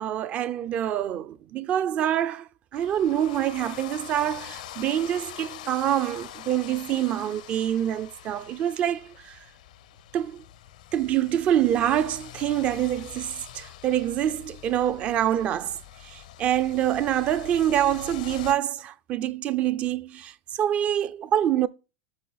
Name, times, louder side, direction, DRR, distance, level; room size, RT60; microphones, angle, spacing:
voice 1, 0.0-9.4 10.1-10.4 10.9-15.8 16.0-21.7, right 11 dB, 30° right, 0.4 m, -26 dB
sound 1, 2.7-18.5, left 12 dB, 85° left, 0.7 m, -44 dB
8.6 x 3.9 x 4.0 m
supercardioid pair, 150°, 4 cm